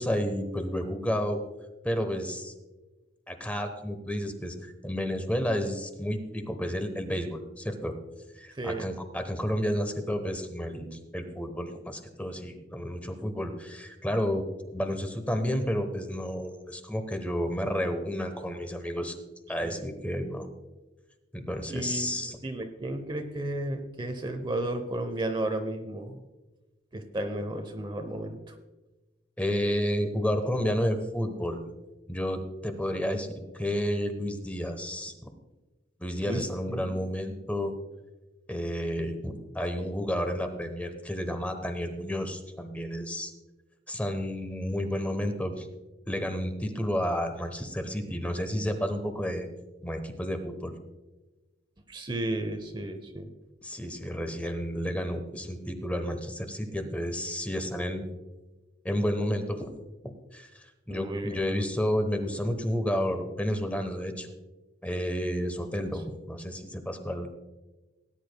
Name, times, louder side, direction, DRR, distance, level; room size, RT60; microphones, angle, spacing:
voice 1, 0.0-1.4 1.8-2.5 3.3-4.5 4.8-7.9 8.4-14.4 14.7-19.1 19.5-20.5 21.3-22.4 29.4-31.6 32.1-35.1 36.0-37.7 38.5-43.3 43.9-45.7 46.1-49.5 49.8-50.7 53.6-58.1 58.8-59.7 60.3-64.3 64.8-67.3, equal, 10° left, 7 dB, 1.0 m, -31 dB
voice 2, 8.5-8.9 19.6-19.9 21.7-26.2 26.9-28.5 36.2-36.4 36.7-37.0 51.9-53.3 60.9-61.7, right 1 dB, 25° right, 6 dB, 0.8 m, -33 dB
18.5 x 9.9 x 2.2 m, 1.1 s
head